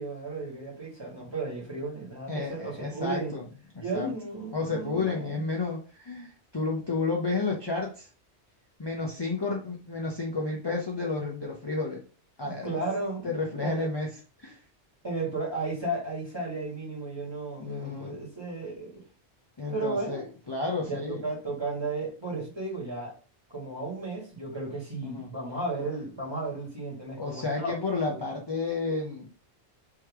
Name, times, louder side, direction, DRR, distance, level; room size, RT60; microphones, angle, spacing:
voice 1, 0.0-3.4 3.8-5.4 12.4-13.9 15.0-19.0 19.7-20.3 20.8-23.1 23.5-27.7 28.1-28.2, right 2 dB, 25° right, 1.8 m, -34 dB
voice 2, 2.3-3.4 3.9-4.1 4.5-8.1 8.8-12.0 12.4-12.8 13.2-14.1 14.4-14.6 17.6-18.2 19.6-21.2 25.0-25.3 27.2-29.3, left 3 dB, 25° left, 0.7 m, -31 dB
3.6 x 3.2 x 4.6 m
omnidirectional pair, 1.1 m